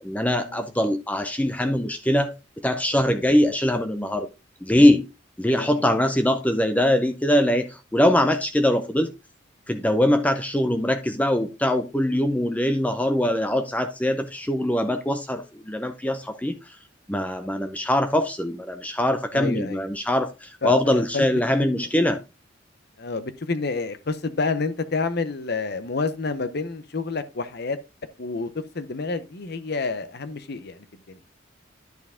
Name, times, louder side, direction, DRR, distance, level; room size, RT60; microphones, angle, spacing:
voice 1, 0.0-2.3 2.6-4.3 4.6-5.0 5.4-9.1 9.7-16.6 17.1-22.2, left 1 dB, 10° left, 0.6 m, -22 dB
voice 2, 5.6-6.0 19.3-19.9 20.6-21.2 21.6-21.9 23.0-27.8 28.2-31.2, left 4 dB, 55° left, 0.8 m, -29 dB
10.5 x 4.7 x 3.6 m
head